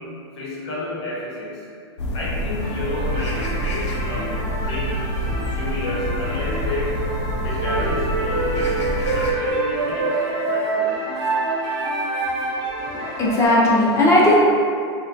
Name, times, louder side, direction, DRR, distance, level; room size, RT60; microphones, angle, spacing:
voice 1, 0.0-1.7 2.1-4.3 4.6-5.0 5.5-7.0 7.4-11.0, left 2 dB, 70° left, -6 dB, 0.8 m, -31 dB
sound 1, 2.0-9.3, equal, 85° left, 0.4 m, -27 dB
sound 2, 2.6-13.5, equal, 35° right, 0.5 m, -33 dB
sound 3, 7.6-12.7, right 3 dB, 80° right, 0.6 m, -24 dB
voice 2, 12.9-14.4, left 1 dB, 20° left, -5 dB, 0.5 m, -16 dB
2.3 x 2.1 x 2.5 m, 2.4 s
hypercardioid pair, 130°, 14 cm